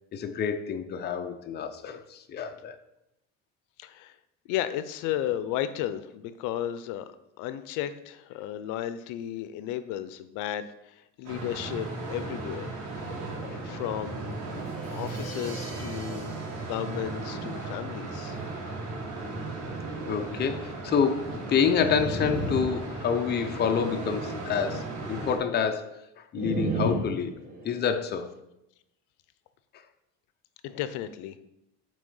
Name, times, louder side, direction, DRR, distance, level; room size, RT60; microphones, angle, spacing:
voice 1, 0.1-2.8 20.1-25.9 26.3-27.3 27.6-28.3, left 7 dB, 35° left, 7 dB, 0.6 m, -28 dB
voice 2, 3.8-4.2 4.5-7.1 7.4-12.7 13.4-14.4 14.9-18.4 30.6-31.4, left 11 dB, 85° left, 12 dB, 0.5 m, -34 dB
sound 1, 11.2-25.4, right 3 dB, 80° right, 2.7 m, -36 dB
Crash cymbal, 14.5-18.3, right 3 dB, 60° right, 2.4 m, -47 dB
sound 2, 21.6-23.5 26.3-27.9, right 2 dB, 30° right, 1.6 m, -32 dB
6.2 x 4.3 x 5.4 m, 0.86 s
cardioid pair, 135°, 30 cm